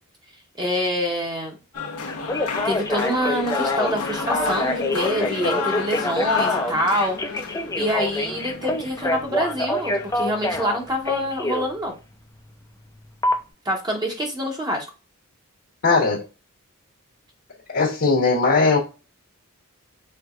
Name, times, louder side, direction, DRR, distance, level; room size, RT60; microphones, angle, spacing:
voice 1, 0.6-1.6 2.6-7.5 7.8-11.9 13.6-14.8, equal, 20° right, 1 dB, 0.9 m, -26 dB
sound 1, 1.7-10.3, left 4 dB, 80° left, 0.9 m, -30 dB
Telephone, 2.1-11.7 13.2-13.3, left 1 dB, 15° left, 0.5 m, -26 dB
voice 2, 15.8-16.2 17.7-18.8, left 4 dB, 60° left, -4 dB, 1.1 m, -19 dB
4.6 x 3.4 x 2.4 m, 0.31 s
head